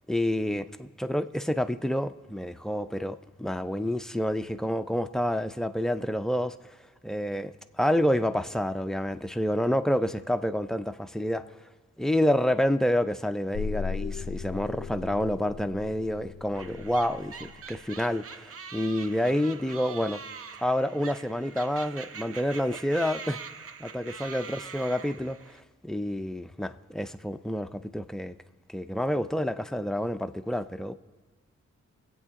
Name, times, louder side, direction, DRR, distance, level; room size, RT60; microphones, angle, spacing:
voice 1, 0.1-6.6 7.0-11.6 12.0-20.2 20.6-23.4 23.8-28.4 28.7-30.9, equal, ahead, 0.4 m, -28 dB
sound 1, 13.5-17.8, left 6 dB, 60° left, 0.5 m, -37 dB
sound 2, 16.5-25.6, right 6 dB, 50° right, 0.5 m, -43 dB
24.0 x 8.3 x 3.6 m
wide cardioid pair, 110°, 30 cm